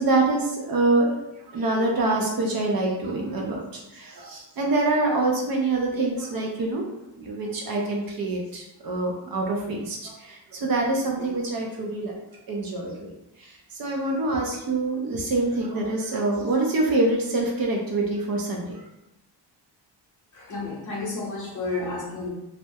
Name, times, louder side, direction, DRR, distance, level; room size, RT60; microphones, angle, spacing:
voice 1, 0.0-6.8 7.2-12.1 12.5-13.1 13.4-18.8, right 2 dB, 55° right, -1 dB, 0.5 m, -25 dB
voice 2, 20.3-22.3, left 3 dB, 45° left, -4 dB, 0.7 m, -31 dB
2.2 x 2.1 x 2.7 m, 0.92 s
wide cardioid pair, 170°, 45 cm